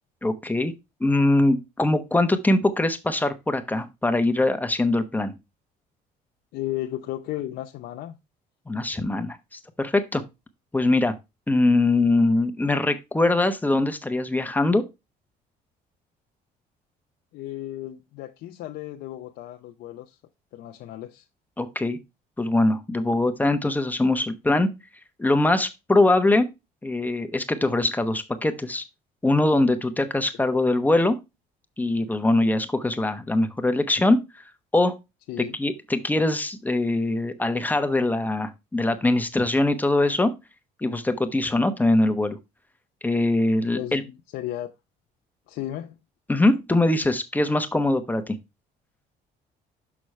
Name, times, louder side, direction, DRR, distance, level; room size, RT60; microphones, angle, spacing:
voice 1, 0.2-0.7 1.0-5.3 8.7-9.4 9.8-10.2 10.7-11.2 11.5-14.9 21.6-22.0 22.4-24.7 25.2-26.5 26.8-28.8 29.2-31.2 31.8-34.2 34.7-35.0 35.6-40.3 40.8-42.4 43.0-44.0 46.3-48.4, left 2 dB, 10° left, 0.9 m, -22 dB
voice 2, 6.5-8.2 17.3-20.2 20.5-21.2 30.3-30.4 35.3-35.6 43.7-44.7 45.5-45.9, left 13 dB, 80° left, 0.7 m, -34 dB
6.3 x 6.0 x 3.2 m
cardioid pair, 110°, 17 cm